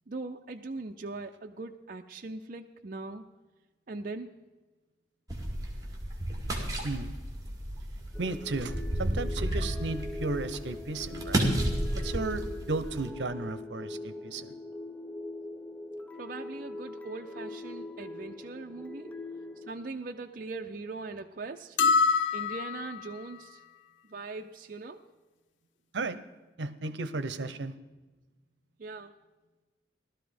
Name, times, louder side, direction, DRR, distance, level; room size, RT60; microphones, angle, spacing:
voice 1, 0.1-3.2 3.9-4.3 16.2-19.1 19.7-21.8 22.3-23.6 24.1-25.0 28.8-29.1, right 3 dB, 50° right, 3 dB, 0.5 m, -40 dB
sound 1, 5.3-13.1, right 1 dB, 20° right, 2.3 m, -33 dB
sound 2, 8.1-19.7, left 2 dB, 10° left, 0.5 m, -42 dB
voice 2, 8.2-11.5 11.9-14.6 25.9-26.2 26.6-27.7, right 3 dB, 80° right, 13 dB, 0.8 m, -34 dB
sound 3, 21.8-23.1, left 5 dB, 90° left, 0.5 m, -25 dB
16.0 x 12.5 x 5.1 m, 1.2 s
head